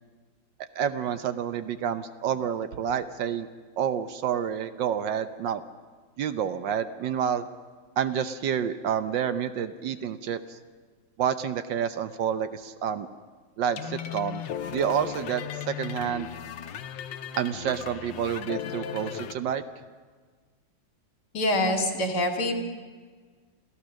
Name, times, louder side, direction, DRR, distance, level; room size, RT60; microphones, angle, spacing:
voice 1, 0.8-3.5 3.8-5.6 6.2-7.5 8.0-10.6 11.2-13.1 13.6-14.4 14.7-16.3 17.4-19.6, right 8 dB, 70° right, 11 dB, 1.5 m, -29 dB
sound 1, 13.8-19.3, left 9 dB, 75° left, 1.5 m, -36 dB
voice 2, 21.3-22.5, left 1 dB, 55° left, 3 dB, 2.8 m, -25 dB
27.0 x 15.5 x 6.4 m, 1.5 s
omnidirectional pair, 2.1 m